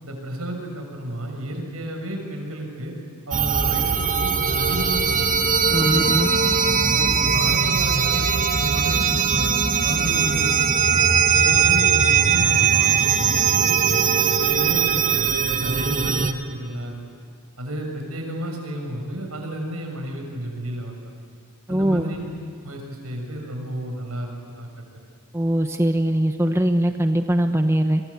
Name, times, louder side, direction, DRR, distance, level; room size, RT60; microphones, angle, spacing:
voice 1, 0.0-2.9 3.3-5.3 5.7-6.2 6.9-9.5 9.8-11.0 11.3-13.7 14.4-17.0 17.6-21.0 21.7-22.2 22.6-24.7, right 1 dB, 75° right, 2 dB, 6.6 m, -32 dB
sound 1, 3.3-16.3, right 6 dB, 35° right, 1.3 m, -20 dB
voice 2, 5.7-6.3 21.7-22.1 25.3-28.0, right 1 dB, 10° right, 6 dB, 0.9 m, -21 dB
29.0 x 24.0 x 8.4 m, 2.1 s
head